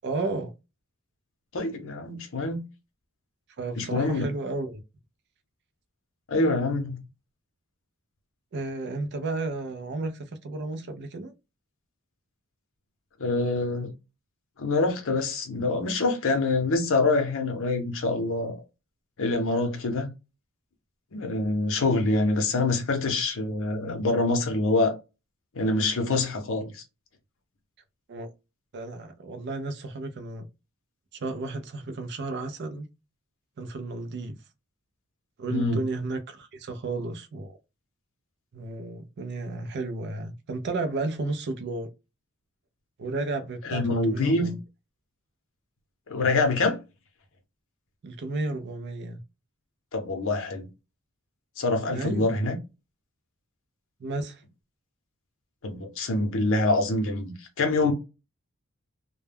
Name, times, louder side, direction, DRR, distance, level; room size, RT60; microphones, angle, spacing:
voice 1, 0.0-0.5 3.6-4.8 8.5-11.3 28.1-28.3 28.7-30.5 31.1-32.9 33.6-34.4 35.4-37.6 38.5-41.9 43.0-44.6 48.0-49.2 51.9-52.3 54.0-54.4, right 2 dB, 50° right, 0.4 m, -33 dB
voice 2, 1.5-2.6 3.8-4.2 6.3-7.0 13.2-13.9 14.6-18.6 19.2-20.1 21.1-24.9 25.6-26.8 35.5-35.8 43.7-44.5 46.1-46.8 49.9-50.7 51.6-52.6 55.6-57.9, left 2 dB, 60° left, 0.7 m, -25 dB
2.2 x 2.1 x 3.3 m
head